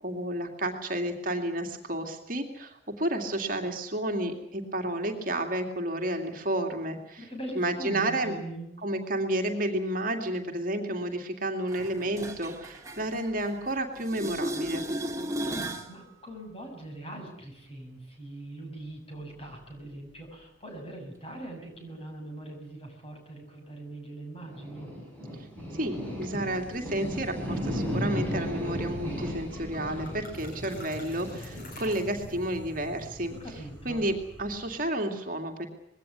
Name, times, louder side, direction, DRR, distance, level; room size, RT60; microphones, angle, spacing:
voice 1, 0.0-7.3 7.6-8.4 8.8-14.8 25.7-33.3 33.9-34.1 34.4-35.7, right 1 dB, 45° right, 4 dB, 2.5 m, -31 dB
voice 2, 7.2-8.7 15.6-24.9 33.3-34.1, right 1 dB, 30° left, 3 dB, 7.1 m, -42 dB
sound 1, 11.7-13.7 14.0-15.9 21.7-21.8, right 1 dB, 15° right, 2.1 m, -35 dB
sound 2, 24.4-34.8, equal, 10° left, 7.7 m, -36 dB
sound 3, 29.2-29.3 29.5-32.6, left 1 dB, 50° left, 6.0 m, -46 dB
21.0 x 17.5 x 9.7 m, 0.78 s
head